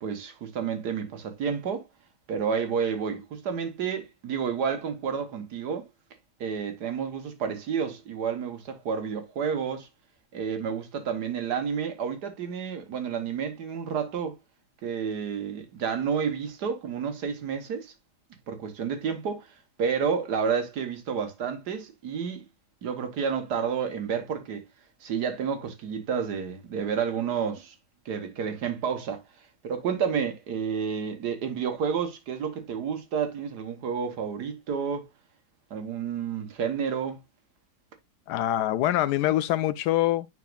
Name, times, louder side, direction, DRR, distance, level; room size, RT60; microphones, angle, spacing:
voice 1, 0.0-1.9 2.3-5.9 6.4-9.9 10.3-14.3 14.8-17.9 18.5-19.5 19.8-22.5 22.8-24.6 25.0-27.8 28.1-29.2 29.6-35.1 35.7-37.2, right 6 dB, 85° right, 1.8 m, -30 dB
voice 2, 38.3-40.3, left 14 dB, 85° left, 1.2 m, -24 dB
9.5 x 4.2 x 2.4 m
omnidirectional pair, 1.7 m